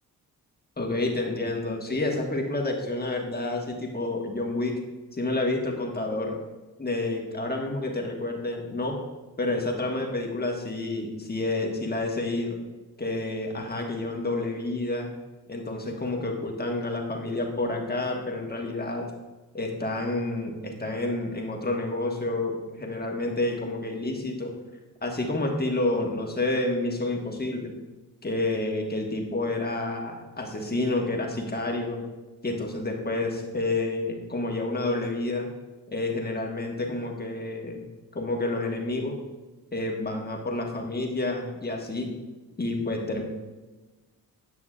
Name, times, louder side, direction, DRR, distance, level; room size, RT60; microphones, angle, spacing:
voice 1, 0.8-4.8 5.1-6.4 6.8-9.0 9.4-12.6 13.0-15.1 15.5-19.0 19.5-24.5 25.0-27.7 28.2-32.0 32.4-35.5 35.9-37.8 38.1-39.1 39.7-42.1 42.6-43.2, left 2 dB, 25° left, 1 dB, 1.4 m, -29 dB
9.9 x 6.0 x 2.4 m, 1.2 s
cardioid pair, 65°, 35 cm